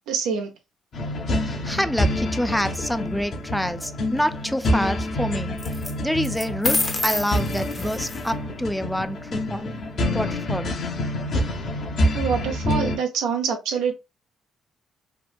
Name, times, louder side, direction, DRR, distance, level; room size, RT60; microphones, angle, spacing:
voice 1, 0.1-0.5 12.1-13.9, right 6 dB, 80° right, 0.6 m, -25 dB
sound 1, 0.9-13.0, left 1 dB, 60° left, 0.8 m, -27 dB
voice 2, 1.4-5.6 6.0-9.7 10.1-10.7, equal, 5° left, 0.3 m, -27 dB
sound 2, 2.7-3.2 5.6-5.9 6.2-8.3, left 2 dB, 25° left, 0.7 m, -28 dB
2.9 x 2.1 x 2.3 m
supercardioid pair, 55°, 0 cm